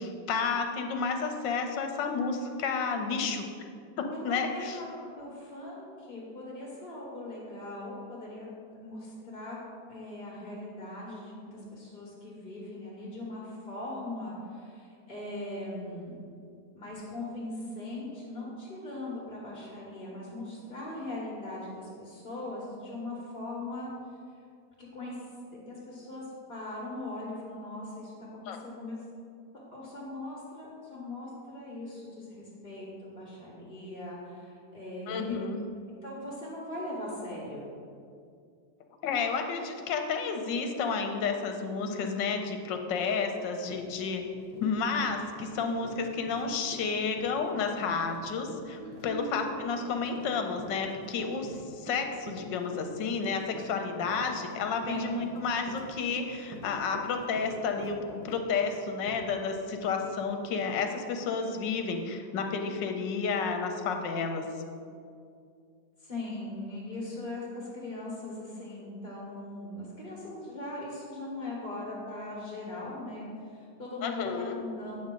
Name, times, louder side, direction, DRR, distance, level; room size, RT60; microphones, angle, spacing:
voice 1, 0.0-3.4 4.0-4.8 28.5-28.6 35.1-35.6 39.0-44.2 44.6-64.4 74.0-74.6, left 5 dB, 80° left, 5 dB, 1.4 m, -31 dB
voice 2, 4.1-8.5 8.8-9.6 9.9-16.1 16.7-23.9 24.8-25.2 25.6-29.0 29.7-35.4 36.0-37.6 48.8-49.4 54.7-55.0 66.0-74.3 74.6-75.0, left 2 dB, 30° left, -6 dB, 1.5 m, -40 dB
Run, 43.2-43.4 43.7-59.6 60.0-60.1 60.6-60.7, right 2 dB, 80° right, 1.7 m, -47 dB
8.5 x 6.2 x 3.8 m, 2.3 s
omnidirectional pair, 2.0 m